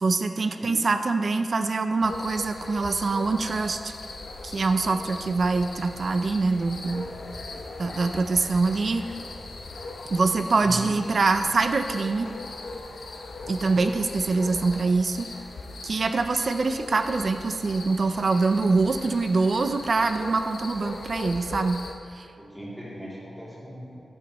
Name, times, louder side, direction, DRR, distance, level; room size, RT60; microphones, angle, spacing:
voice 1, 0.0-3.9 4.4-7.1 7.8-9.0 10.1-12.3 13.5-15.3 15.8-21.8 22.1-22.3, right 3 dB, 45° right, 8 dB, 0.4 m, -24 dB
sound 1, 2.0-21.9, left 3 dB, 75° left, 0.8 m, -39 dB
voice 2, 10.6-10.9 22.4-24.0, left 1 dB, 5° right, -8 dB, 2.6 m, -38 dB
13.5 x 8.2 x 3.0 m, 2.2 s
wide cardioid pair, 155°, 0 cm